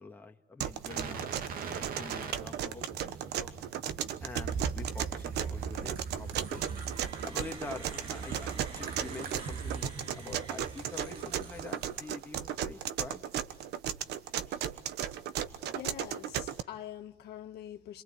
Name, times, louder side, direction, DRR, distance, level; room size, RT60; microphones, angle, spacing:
voice 1, 0.0-1.4 1.6-3.5 4.2-6.8 7.2-13.2, left 3 dB, 10° left, 2.2 m, -46 dB
sound 1, 0.6-16.6, right 10 dB, 80° right, 1.3 m, -35 dB
sound 2, 0.9-12.1 12.4-12.6, right 5 dB, 60° right, 2.2 m, -41 dB
sound 3, 6.4-12.1, right 2 dB, 35° right, 3.5 m, -50 dB
voice 2, 15.7-18.0, left 11 dB, 70° left, 1.9 m, -44 dB
29.5 x 23.0 x 8.7 m
cardioid pair, 110°, 17 cm